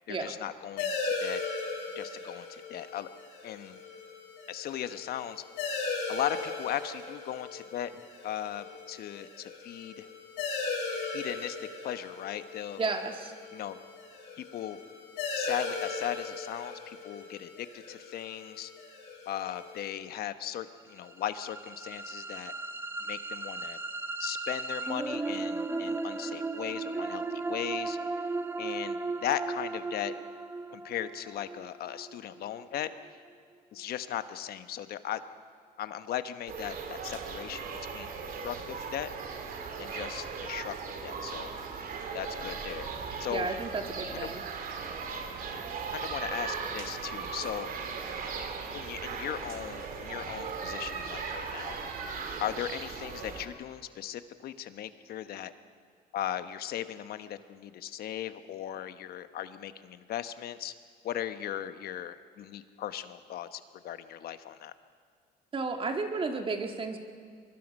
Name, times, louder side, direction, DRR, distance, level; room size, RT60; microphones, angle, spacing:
voice 1, 0.1-1.4 1.9-3.1 3.4-3.8 4.5-5.4 6.1-7.9 8.2-10.1 11.1-12.8 13.5-13.8 14.4-14.8 15.3-18.7 19.2-22.5 23.0-23.8 24.2-28.0 28.6-30.1 30.7-32.9 33.7-35.2 35.8-38.1 38.4-39.1 39.8-40.7 41.0-41.5 42.1-42.9 43.2-43.5 44.1-44.3 45.9-47.7 48.7-51.8 52.4-55.5 56.1-60.7 61.0-64.7, left 11 dB, 65° left, 11 dB, 1.1 m, -37 dB
sound 1, 0.8-19.9, left 4 dB, 90° left, 7.1 m, -38 dB
voice 2, 12.8-13.3 43.3-44.4 65.5-67.0, right 4 dB, 30° right, 4 dB, 2.0 m, -32 dB
sound 2, 21.0-33.1, right 3 dB, 15° right, 0.9 m, -36 dB
sound 3, 36.5-53.5, right 5 dB, 55° right, 2.7 m, -38 dB
24.0 x 22.5 x 5.4 m, 2.1 s
cardioid pair, 110°, 17 cm